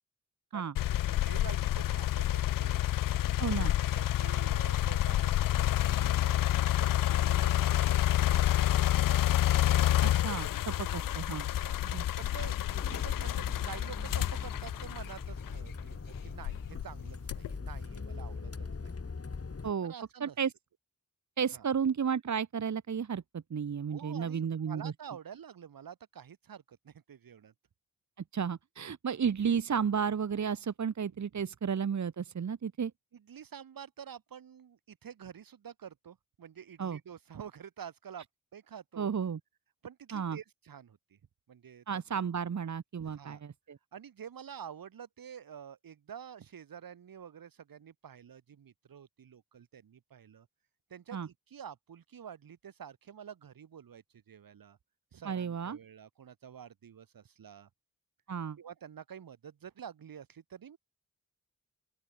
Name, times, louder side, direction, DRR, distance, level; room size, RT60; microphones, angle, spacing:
voice 1, 0.5-2.8 3.6-7.8 8.3-9.4 11.6-11.8 12.2-16.0 16.2-19.0 19.8-20.4 21.5-21.7 23.9-27.5 31.1-31.5 33.1-38.3 38.5-39.1 39.8-41.2 41.5-41.8 42.1-42.2 43.0-43.4 43.9-50.5 50.9-54.8 55.1-57.7 58.6-60.8, right 8 dB, 90° right, 6.0 m, -49 dB
sound 1, 0.8-15.8 16.4-17.6, left 13 dB, 75° left, 0.5 m, -28 dB
voice 2, 3.4-3.7 10.0-11.5 11.8-12.1 19.6-19.9 20.2-20.5 21.4-24.9 28.3-32.9 36.8-37.0 39.0-39.4 40.1-40.4 41.9-43.8 51.1-51.3 55.2-55.8 58.3-58.6, right 7 dB, 55° right, 1.3 m, -33 dB
sound 2, 10.3-19.7, left 4 dB, 45° left, 3.9 m, -42 dB
open air
cardioid pair, 60°, 34 cm